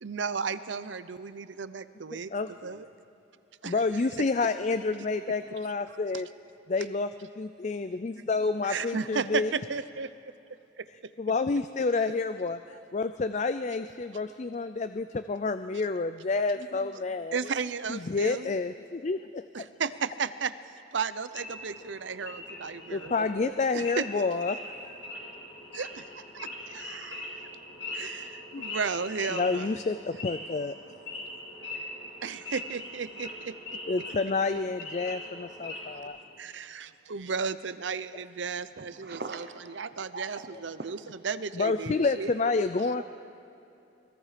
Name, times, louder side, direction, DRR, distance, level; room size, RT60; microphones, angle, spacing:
voice 1, 0.0-2.3 2.6-2.9 3.6-3.8 4.2-4.3 5.9-6.0 8.7-10.1 10.8-10.9 17.3-18.5 19.5-20.5 20.9-24.2 25.7-26.1 26.3-27.4 27.9-29.8 32.2-33.8 36.4-39.2 39.7-41.0 41.2-42.5, right 5 dB, 85° right, 14 dB, 0.7 m, -34 dB
voice 2, 2.1-2.8 3.6-6.3 6.7-7.1 7.4-9.5 11.2-12.6 12.9-17.4 17.9-19.7 22.9-24.6 24.9-25.0 28.5-28.6 29.3-30.7 33.9-36.2 41.5-43.0, left 3 dB, 40° left, 11 dB, 0.4 m, -29 dB
Wild animals / Idling, 21.3-36.0, left 2 dB, 75° left, 5.1 m, -41 dB
voice 3, 38.7-39.9 40.1-41.2 41.6-42.1 42.6-43.0, right 3 dB, 60° right, 7 dB, 0.9 m, -42 dB
27.5 x 20.5 x 5.0 m, 2.8 s
head